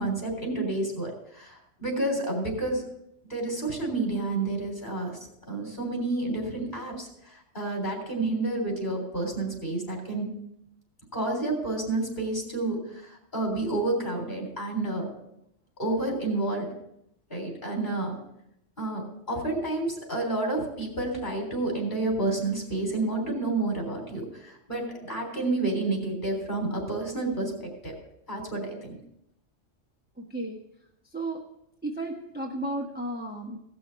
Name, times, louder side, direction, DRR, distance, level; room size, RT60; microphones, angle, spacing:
voice 1, 0.0-2.8 3.3-5.2 5.5-10.3 11.1-15.1 15.8-16.7 17.3-18.2 18.8-27.9 28.3-29.0, right 2 dB, 40° left, 0 dB, 3.8 m, -30 dB
voice 2, 30.2-30.6 31.1-31.4 31.8-33.6, right 1 dB, 10° right, -1 dB, 1.0 m, -33 dB
16.5 x 6.2 x 5.6 m, 0.80 s
omnidirectional pair, 1.3 m